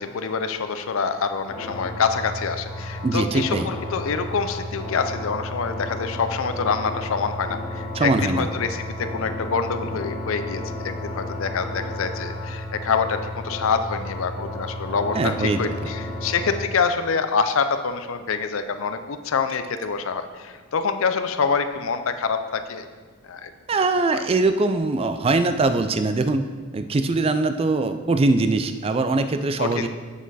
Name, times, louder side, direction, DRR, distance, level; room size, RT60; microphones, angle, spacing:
voice 1, 0.0-22.9 23.2-23.5 24.1-24.2 29.6-29.9, left 5 dB, 60° left, 9 dB, 0.5 m, -26 dB
sound 1, 1.5-16.6, left 1 dB, 5° right, 1.7 m, -32 dB
voice 2, 3.0-3.7 7.9-8.5 15.1-15.9 23.7-26.5 26.7-29.9, right 3 dB, 25° right, 10 dB, 0.3 m, -22 dB
7.2 x 6.1 x 4.1 m, 1.5 s
head